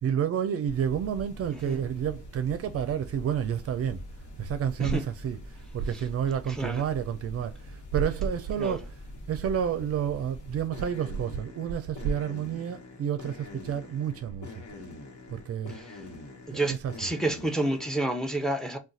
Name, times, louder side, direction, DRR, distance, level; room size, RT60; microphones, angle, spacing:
voice 1, 0.0-4.0 4.4-9.0 9.3-14.6 15.3-15.8 16.5-17.1, right 8 dB, 50° right, 0.5 m, -30 dB
sound 1, 0.7-18.1, left 1 dB, 75° left, 1.1 m, -45 dB
voice 2, 16.5-18.8, right 1 dB, ahead, 0.6 m, -29 dB
2.4 x 2.3 x 4.0 m
cardioid pair, 90°, 30 cm